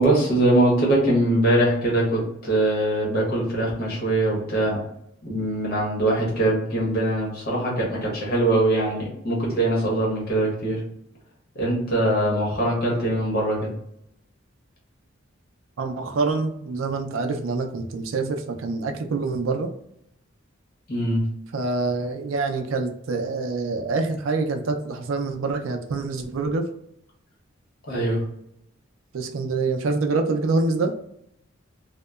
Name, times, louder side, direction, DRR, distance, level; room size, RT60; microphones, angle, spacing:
voice 1, 0.0-4.8 5.2-10.8 11.5-13.7 20.9-21.2 27.9-28.2, right 1 dB, 50° left, -3 dB, 1.1 m, -22 dB
voice 2, 15.8-19.7 21.5-26.7 29.1-30.9, right 3 dB, 80° right, 5 dB, 0.4 m, -26 dB
2.8 x 2.1 x 2.2 m, 0.75 s
head